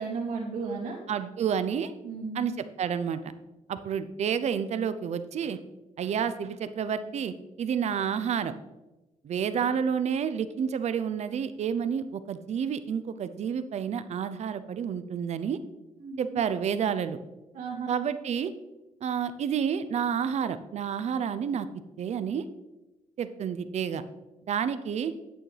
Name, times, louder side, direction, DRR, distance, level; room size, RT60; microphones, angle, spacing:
voice 1, 0.0-1.0 2.0-2.4 16.0-16.4 17.5-17.9, right 4 dB, 85° right, -4 dB, 2.3 m, -34 dB
voice 2, 1.1-1.9 2.3-3.3 3.7-5.6 6.0-8.5 9.2-15.6 16.2-17.2 17.9-18.5 19.0-21.7 22.0-22.4 23.2-24.0 24.5-25.1, right 7 dB, 60° right, 12 dB, 0.6 m, -29 dB
10.0 x 8.5 x 3.3 m, 1.0 s
cardioid pair, 120°, 13 cm